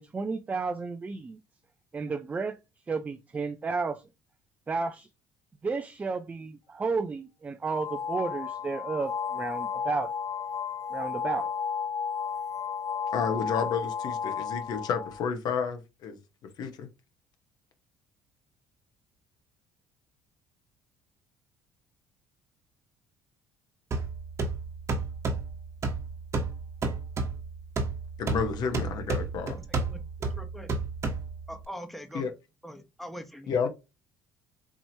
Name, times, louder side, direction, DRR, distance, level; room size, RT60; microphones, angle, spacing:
voice 1, 0.0-1.4 1.9-2.6 2.9-4.0 4.7-5.1 5.6-10.1 10.9-11.5, right 4 dB, 20° right, 0.4 m, -32 dB
sound 1, 7.7-15.2, left 7 dB, 40° left, 0.4 m, -33 dB
voice 2, 13.1-16.2 16.6-16.9 28.2-29.6 32.1-32.3 33.5-33.7, left 6 dB, 60° left, 0.9 m, -30 dB
sound 2, 23.9-31.6, right 3 dB, 40° right, 1.2 m, -32 dB
voice 3, 29.6-30.0 30.3-30.7 31.5-32.3 32.6-33.5, equal, ahead, 0.8 m, -42 dB
4.6 x 2.9 x 2.7 m
cardioid pair, 105°, 8 cm